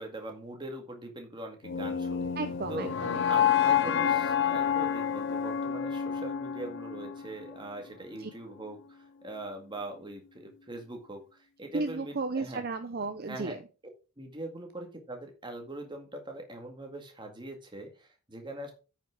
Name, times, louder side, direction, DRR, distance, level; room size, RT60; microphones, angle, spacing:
voice 1, 0.0-2.3 2.7-2.9 3.3-11.2 11.6-12.6 13.3-13.6 14.2-18.7, right 1 dB, 20° right, 3 dB, 1.9 m, -42 dB
sound 1, 1.6-7.7, left 8 dB, 55° left, 0.5 m, -29 dB
voice 2, 2.4-3.4 8.2-8.3 11.7-13.6, right 3 dB, 45° right, 9 dB, 0.6 m, -34 dB
9.1 x 5.8 x 4.9 m, 0.33 s
head